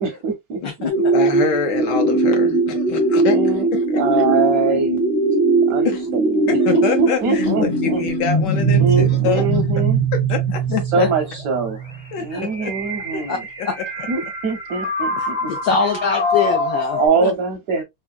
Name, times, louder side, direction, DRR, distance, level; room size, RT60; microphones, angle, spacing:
voice 1, 0.0-0.9 3.2-3.7 3.9-5.0 5.7-8.0 8.8-10.0 10.9-11.8 12.2-13.4 14.1-15.5 17.0-17.8, right 4 dB, 70° right, 0.8 m, -23 dB
voice 2, 0.6-4.0 5.8-6.1 6.5-9.5 10.1-10.6 12.1-12.7 13.1-13.2 13.6-13.7 15.8-15.9, left 6 dB, 70° left, 1.1 m, -25 dB
sound 1, 0.9-17.1, right 2 dB, 30° left, 0.5 m, -21 dB
voice 3, 10.7-11.1 12.3-12.4 13.3-13.4 13.7-13.8 15.2-17.3, left 5 dB, 90° left, 0.7 m, -23 dB
3.5 x 2.1 x 2.3 m
omnidirectional pair, 2.2 m